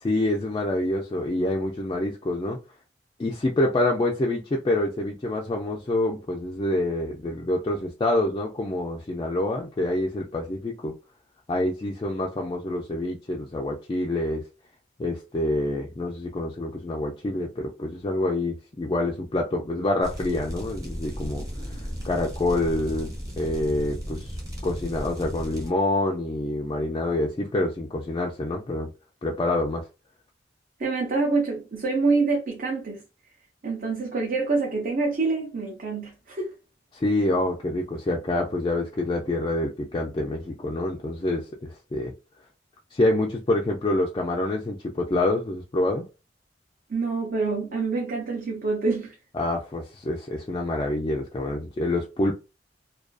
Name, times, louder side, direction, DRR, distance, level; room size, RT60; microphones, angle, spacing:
voice 1, 0.0-2.6 3.2-10.9 11.5-14.4 15.0-21.4 21.8-23.1 23.4-24.4 24.6-28.9 29.2-29.9 36.9-42.1 42.9-46.0 49.3-52.3, left 1 dB, 25° left, 0.3 m, -26 dB
sound 1, 20.0-25.7, equal, 20° right, 1.0 m, -35 dB
voice 2, 30.8-33.0 33.6-36.5 46.9-49.1, right 3 dB, 50° right, 0.6 m, -26 dB
2.4 x 2.3 x 2.3 m
head